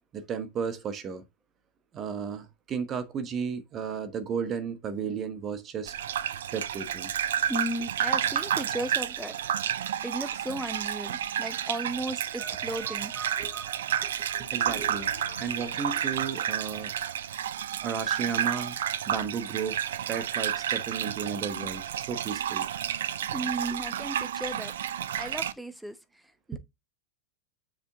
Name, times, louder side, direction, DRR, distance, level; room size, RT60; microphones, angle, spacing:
voice 1, 0.1-1.2 1.9-5.9 6.5-7.1 12.4-15.1 15.4-16.9 17.8-18.8 19.1-19.8 20.1-22.7, right 6 dB, 30° right, 1.2 m, -34 dB
Gurgling / Bathtub (filling or washing), 5.9-25.5, right 10 dB, 60° right, 0.5 m, -31 dB
voice 2, 7.5-9.3 9.7-13.1 23.3-24.7 25.2-26.0 26.5-26.6, right 1 dB, 5° right, 1.0 m, -35 dB
sound 1, 14.5-17.7, left 2 dB, 80° left, 1.4 m, -46 dB
6.8 x 5.1 x 3.6 m
figure-of-eight pair, 90°, 0 cm